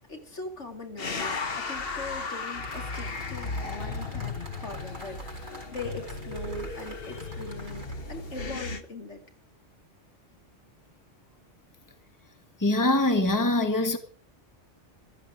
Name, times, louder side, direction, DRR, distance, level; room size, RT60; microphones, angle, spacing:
voice 1, 0.1-9.2, left 2 dB, 70° left, 2.9 m, -41 dB
sound 1, 1.0-8.8, left 3 dB, 55° left, 1.4 m, -35 dB
sound 2, 2.6-8.0, right 1 dB, 40° right, 4.9 m, -48 dB
voice 2, 12.6-14.0, left 2 dB, 15° left, 1.7 m, -23 dB
15.0 x 14.0 x 5.0 m
omnidirectional pair, 1.2 m